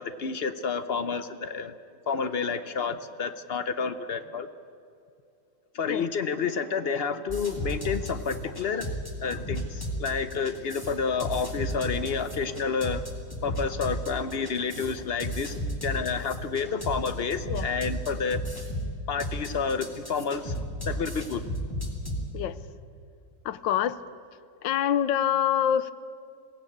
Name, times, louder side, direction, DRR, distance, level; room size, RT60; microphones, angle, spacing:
voice 1, 0.0-1.7 2.1-4.5 5.7-8.9 9.2-13.0 13.4-18.4 19.1-21.4, left 5 dB, 55° left, 11 dB, 0.6 m, -30 dB
sound 1, 7.3-22.2, equal, 10° left, 2.5 m, -34 dB
voice 2, 23.4-24.0 24.6-25.9, left 10 dB, 90° left, 15 dB, 1.4 m, -25 dB
22.0 x 17.0 x 8.6 m, 2.5 s
omnidirectional pair, 2.0 m